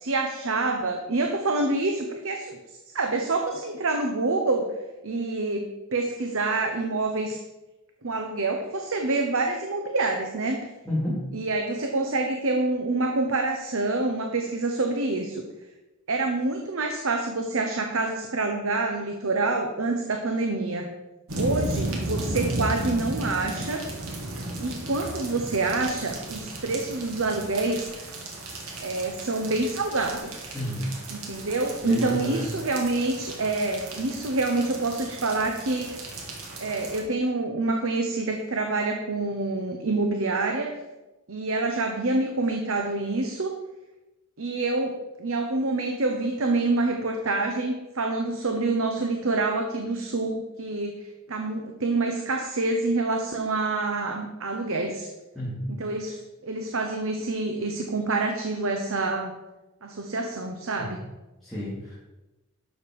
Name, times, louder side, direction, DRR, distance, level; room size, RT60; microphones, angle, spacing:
voice 1, 0.0-2.6 2.9-4.7 5.0-7.4 8.0-10.7 11.3-15.4 16.1-20.9 21.4-23.8 24.6-28.1 28.8-30.4 31.1-36.0 36.6-40.7 41.3-43.5 44.4-55.1 55.7-59.3 59.8-61.0, right 2 dB, 70° right, 3 dB, 1.0 m, -27 dB
voice 2, 10.8-11.2 30.5-30.9 31.2-31.3 31.8-32.5 55.3-55.7 60.8-60.9 61.4-62.0, equal, ahead, -10 dB, 3.2 m, -30 dB
sound 1, 21.3-37.0, right 2 dB, 85° right, 2.3 m, -35 dB
12.0 x 6.8 x 4.8 m, 1.0 s
head